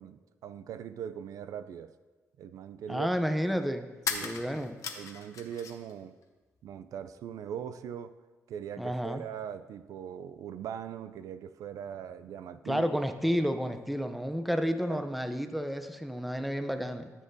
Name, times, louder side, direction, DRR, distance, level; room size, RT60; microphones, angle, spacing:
voice 1, 0.0-1.9 2.4-3.1 4.1-4.6 5.0-6.2 6.6-8.1 8.5-13.0 14.9-15.1, right 9 dB, 85° right, 12 dB, 0.4 m, -41 dB
sound 1, 1.7-1.8 4.0-5.9 6.2-7.1, left 6 dB, 70° left, 0.9 m, -38 dB
voice 2, 2.9-3.9 4.2-4.8 8.8-9.2 12.7-17.1, equal, ahead, 8 dB, 0.6 m, -31 dB
13.5 x 7.3 x 2.7 m, 1.3 s
cardioid pair, 105°, 6 cm